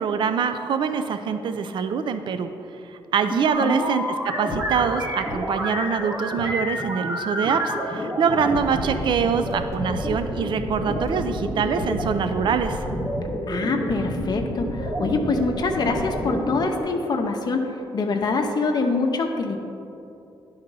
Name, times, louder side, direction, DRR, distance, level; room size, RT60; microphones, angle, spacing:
voice 1, 0.0-2.5 2.9-12.8, right 6 dB, 60° right, 9 dB, 0.4 m, -24 dB
sound 1, 3.5-16.8, equal, 30° right, 1.1 m, -29 dB
voice 2, 13.5-19.6, left 3 dB, 50° left, 3 dB, 0.6 m, -24 dB
10.5 x 3.9 x 5.4 m, 2.8 s
cardioid pair, 120°, 9 cm